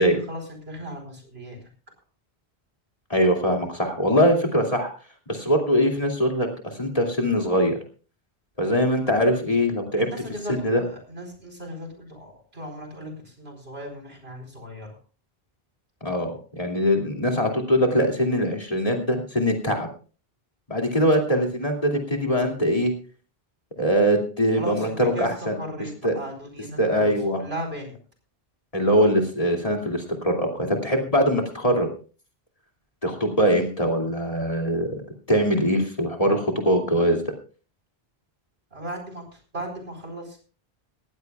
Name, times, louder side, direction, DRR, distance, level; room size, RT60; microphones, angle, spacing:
voice 1, 0.0-1.6 9.9-15.0 24.5-28.0 38.7-39.2 39.5-40.4, right 1 dB, 80° right, 3 dB, 4.6 m, -36 dB
voice 2, 3.1-4.9 5.3-7.8 8.6-10.1 10.6-10.8 16.0-19.9 20.7-22.9 23.8-25.6 26.0-26.1 26.8-27.4 28.7-31.9 33.0-35.0 35.3-37.2, equal, 35° left, 1 dB, 2.7 m, -22 dB
20.0 x 15.0 x 2.4 m, 0.37 s
omnidirectional pair, 1.0 m